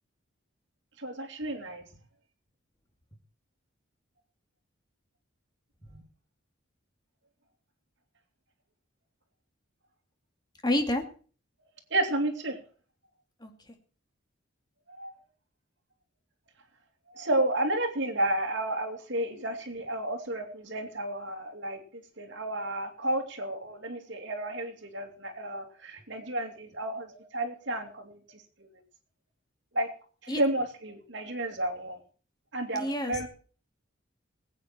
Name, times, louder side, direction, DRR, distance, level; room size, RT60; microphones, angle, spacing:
voice 1, 1.0-1.8 5.9-6.0 11.9-12.6 14.9-15.1 17.1-21.8 22.2-28.8 29.7-29.9 30.2-32.0 32.5-33.3, right 1 dB, 60° right, 4 dB, 2.7 m, -32 dB
voice 2, 10.6-11.0 13.4-13.5 30.3-30.4 32.7-33.3, left 1 dB, 20° left, 5 dB, 2.3 m, -28 dB
20.0 x 9.0 x 4.4 m, 0.40 s
head